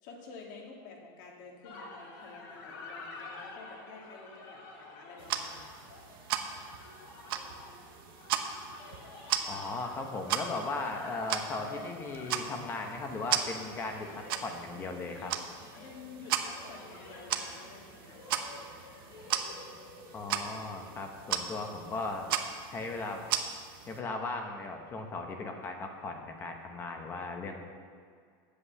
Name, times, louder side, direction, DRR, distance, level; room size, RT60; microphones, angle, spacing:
voice 1, 0.0-5.7 15.7-18.9, left 4 dB, 55° left, 0 dB, 2.1 m, -50 dB
sound 1, 1.6-21.1, left 3 dB, 70° left, 3.1 m, -49 dB
sound 2, 5.2-24.0, right 9 dB, 80° right, 0.9 m, -37 dB
voice 2, 9.5-15.3 20.1-22.3 22.7-23.3 23.9-27.6, left 3 dB, 20° left, 4 dB, 1.0 m, -37 dB
8.4 x 7.8 x 7.1 m, 2.1 s
supercardioid pair, 170°, 12 cm